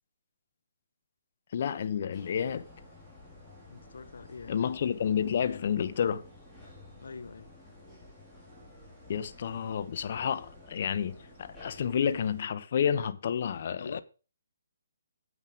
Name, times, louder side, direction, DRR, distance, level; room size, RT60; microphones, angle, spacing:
voice 1, 1.5-2.7 4.5-6.2 9.1-14.0, left 8 dB, 50° left, 1.0 m, -30 dB
sound 1, 2.1-12.4, left 2 dB, ahead, 3.8 m, -52 dB
voice 2, 3.7-4.6 7.0-7.5 13.8-14.0, left 5 dB, 75° left, 0.8 m, -44 dB
9.6 x 7.8 x 5.1 m
hypercardioid pair, 160°, 0 cm